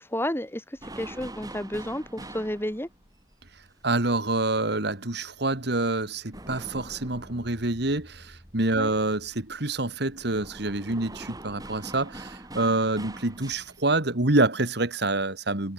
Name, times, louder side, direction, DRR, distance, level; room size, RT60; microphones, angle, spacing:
voice 1, 0.0-2.9 8.8-8.9, left 1 dB, 10° left, 7.1 m, -31 dB
sound 1, 0.8-5.1 5.3-13.9, right 1 dB, 20° right, 6.9 m, -44 dB
voice 2, 3.8-15.7, right 2 dB, 60° right, 2.3 m, -27 dB
head